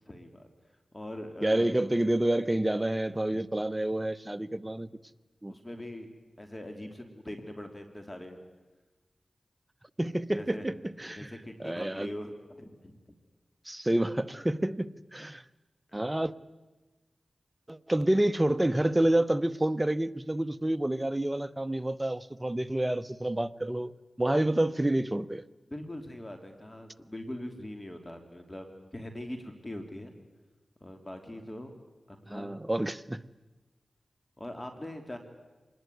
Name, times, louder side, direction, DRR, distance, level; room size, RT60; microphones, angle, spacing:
voice 1, 0.0-0.5 0.9-1.7 3.3-3.4 5.5-6.1 6.4-8.4 10.3-10.7 11.2-13.0 15.9-16.0 25.7-30.2 30.8-31.7 32.1-32.6 34.4-35.2, left 1 dB, 25° left, 3.0 m, -42 dB
voice 2, 1.4-4.9 5.4-5.5 10.0-11.3 11.6-12.1 13.7-15.4 15.9-16.3 17.7-23.9 24.2-25.4 32.3-33.2, right 1 dB, 20° right, 0.9 m, -28 dB
25.5 x 20.0 x 9.4 m
cardioid pair, 50°, 0 cm